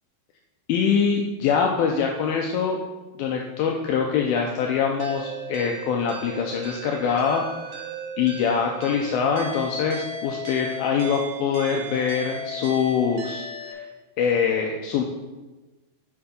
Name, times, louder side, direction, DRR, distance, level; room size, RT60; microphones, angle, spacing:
voice 1, 0.7-2.8 3.2-7.4 8.2-13.8 14.2-15.0, left 6 dB, 80° left, 1 dB, 2.3 m, -24 dB
sound 1, 5.0-13.7, right 1 dB, 75° right, 1.4 m, -36 dB
7.1 x 5.6 x 5.1 m, 1.2 s
omnidirectional pair, 4.5 m